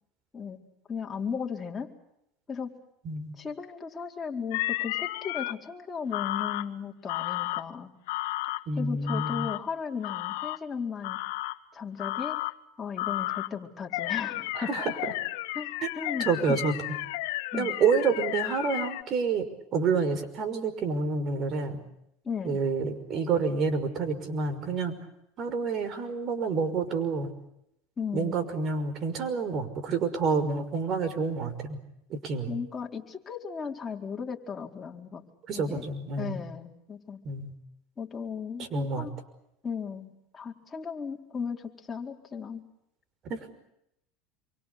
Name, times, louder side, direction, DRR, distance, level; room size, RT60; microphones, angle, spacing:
voice 1, 0.9-1.9 2.5-2.7 3.4-7.9 8.8-11.2 11.7-12.4 12.8-14.7 15.5-16.6 17.5-17.7 22.2-22.6 28.0-28.4 32.5-35.2 35.5-35.9 36.2-37.2 38.0-39.1 39.6-42.6, left 6 dB, 20° left, 1 dB, 4.3 m, -36 dB
sound 1, 4.5-5.5 6.1-6.7 7.1-7.6 8.1-8.6 9.1-9.6 10.0-10.6 11.0-11.6 12.0-12.5 13.0-13.5 13.9-19.0, left 19 dB, 75° left, 1.4 m, -32 dB
voice 2, 8.7-9.5 14.5-15.1 15.8-15.9 16.2-16.7 17.5-21.8 22.4-24.9 25.4-27.3 28.1-31.8 32.1-32.5 35.5-36.4 37.2-37.5 38.6-39.1 43.2-43.5, right 4 dB, 45° right, 9 dB, 5.8 m, -28 dB
27.5 x 24.5 x 8.4 m, 0.80 s
supercardioid pair, 120°, 0 cm